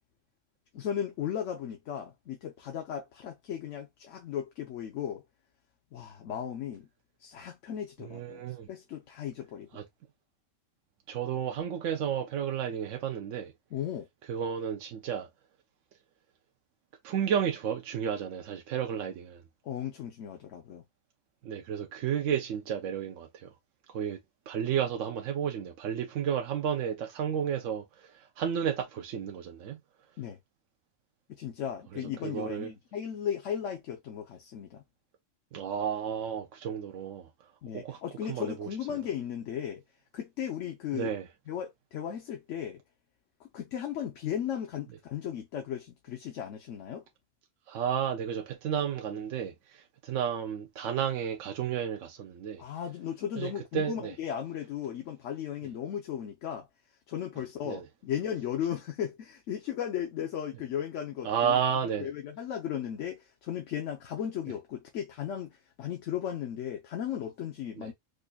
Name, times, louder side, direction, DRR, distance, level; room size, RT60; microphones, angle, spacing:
voice 1, 0.7-5.2 5.9-6.9 7.2-9.7 13.7-14.1 19.6-20.8 30.2-30.4 31.3-34.8 37.6-39.8 40.1-41.1 41.5-42.8 43.5-47.0 52.6-56.7 57.1-61.6 62.0-67.9, left 9 dB, 75° left, 1.1 m, -36 dB
voice 2, 8.0-8.7 9.7-9.8 11.1-13.5 14.3-15.3 17.0-19.4 21.4-23.5 23.9-24.2 24.5-29.8 31.9-32.7 35.5-37.3 37.7-39.0 40.9-41.3 47.7-52.6 53.4-54.1 57.6-57.9 61.2-62.1 67.8-67.9, right 8 dB, 80° right, 1.0 m, -32 dB
5.1 x 2.5 x 2.2 m
omnidirectional pair, 1.3 m